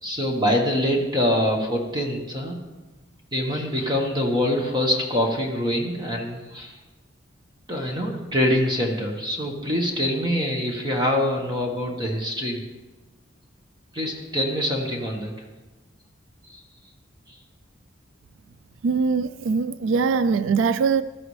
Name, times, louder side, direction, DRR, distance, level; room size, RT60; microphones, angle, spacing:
voice 1, 0.0-2.6 3.3-6.8 7.7-12.6 13.9-15.3 16.5-16.6, left 1 dB, 20° right, 1.4 m, -24 dB
voice 2, 18.8-21.0, right 5 dB, 75° right, 0.3 m, -22 dB
14.5 x 13.0 x 3.3 m
head